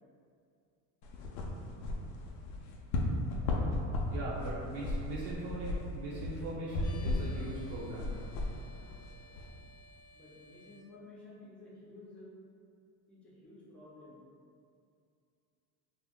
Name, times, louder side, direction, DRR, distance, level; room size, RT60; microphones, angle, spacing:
sound 1, 1.0-9.5, left 2 dB, 80° left, 0.6 m, -36 dB
voice 1, 4.1-8.1, right 2 dB, 60° right, -7 dB, 0.7 m, -40 dB
sound 2, 6.8-10.8, left 1 dB, 40° left, 0.7 m, -57 dB
voice 2, 10.1-12.3 13.1-14.2, left 2 dB, ahead, -8 dB, 0.7 m, -53 dB
2.3 x 2.1 x 3.5 m, 2.4 s
supercardioid pair, 105°, 47 cm